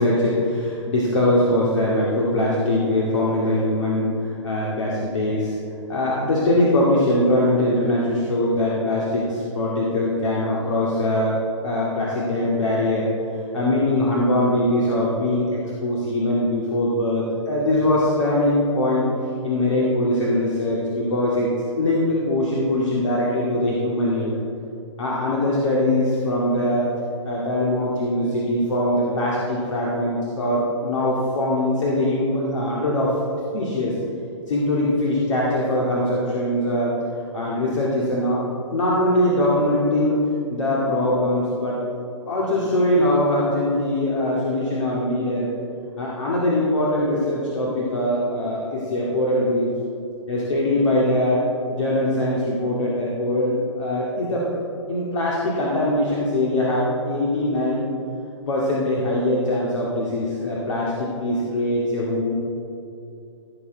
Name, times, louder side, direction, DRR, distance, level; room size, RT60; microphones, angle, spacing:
voice 1, 0.0-5.6 5.9-11.4 11.6-13.1 13.5-19.1 19.4-24.3 25.0-26.9 27.2-33.1 33.5-34.0 34.5-37.0 37.3-38.4 38.7-40.2 40.5-41.9 42.3-45.5 46.0-49.7 50.3-54.5 54.9-57.9 58.5-62.3, left 1 dB, 70° left, -5 dB, 2.2 m, -22 dB
15.5 x 7.1 x 4.0 m, 2.7 s
hypercardioid pair, 130°, 16 cm